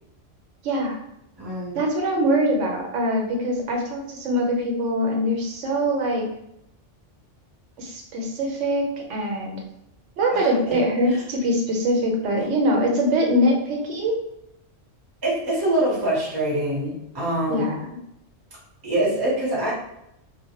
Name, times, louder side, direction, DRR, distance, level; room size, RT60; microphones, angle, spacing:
voice 1, 0.6-1.0 1.7-6.3 7.8-9.6 10.2-14.2 17.5-17.7, equal, 80° right, 1 dB, 0.9 m, -23 dB
voice 2, 1.4-1.8 10.3-10.8 11.1-11.2 15.2-17.8 18.8-19.7, right 1 dB, 25° right, -6 dB, 0.6 m, -25 dB
2.1 x 2.0 x 2.9 m, 0.80 s
omnidirectional pair, 1.2 m